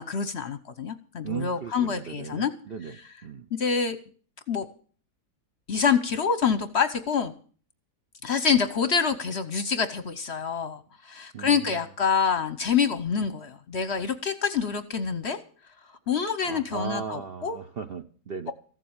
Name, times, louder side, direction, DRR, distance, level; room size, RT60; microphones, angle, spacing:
voice 1, 0.0-2.5 2.9-3.0 3.5-4.0 4.5-4.7 5.7-7.3 8.2-15.4 16.1-17.6, left 6 dB, 50° left, 12 dB, 0.9 m, -26 dB
voice 2, 1.2-3.0 3.2-3.4 11.3-11.7 16.4-18.5, right 6 dB, 50° right, 8 dB, 0.7 m, -36 dB
15.0 x 7.5 x 8.7 m, 0.42 s
omnidirectional pair, 1.8 m